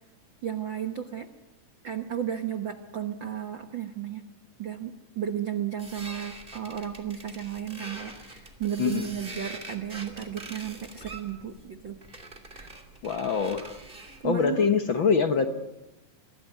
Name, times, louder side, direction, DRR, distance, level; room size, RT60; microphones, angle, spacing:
voice 1, 0.4-1.3 1.8-4.2 4.6-12.0 12.5-12.8 14.2-14.7, right 9 dB, 85° right, 8 dB, 1.0 m, -34 dB
sound 1, 5.8-14.3, right 2 dB, 15° right, 2.9 m, -44 dB
voice 2, 13.0-13.8 14.2-15.5, left 6 dB, 60° left, 7 dB, 1.3 m, -24 dB
26.0 x 22.5 x 9.4 m, 0.97 s
omnidirectional pair, 4.1 m